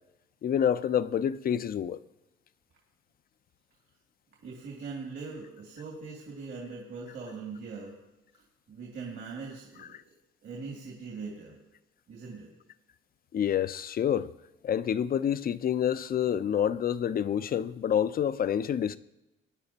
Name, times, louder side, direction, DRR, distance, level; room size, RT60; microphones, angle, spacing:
voice 1, 0.4-2.0 13.3-14.3 14.6-19.0, left 9 dB, 50° left, 0.5 m, -28 dB
voice 2, 4.4-8.0 8.7-10.0 10.4-11.6 12.1-12.5, right 4 dB, 70° right, 2.4 m, -41 dB
19.5 x 9.7 x 2.9 m
cardioid pair, 90°, 20 cm